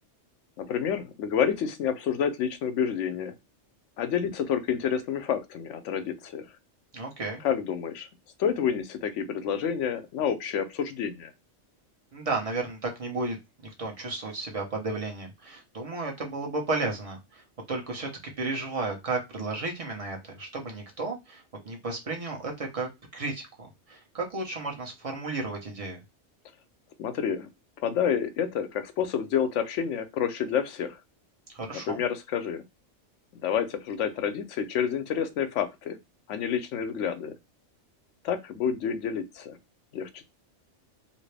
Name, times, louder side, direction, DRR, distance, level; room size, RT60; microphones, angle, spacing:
voice 1, 0.6-3.3 4.0-6.4 7.4-8.1 8.4-11.3 27.0-27.5 27.8-31.0 31.9-32.6 33.3-36.0 36.3-37.3 38.2-39.6 39.9-40.2, left 8 dB, 80° left, 0.9 m, -29 dB
voice 2, 6.9-7.4 12.1-13.4 13.6-17.4 17.7-18.1 18.4-23.5 23.9-26.0 31.5-32.0, right 3 dB, 30° right, 1.0 m, -33 dB
2.8 x 2.8 x 3.3 m
omnidirectional pair, 1.2 m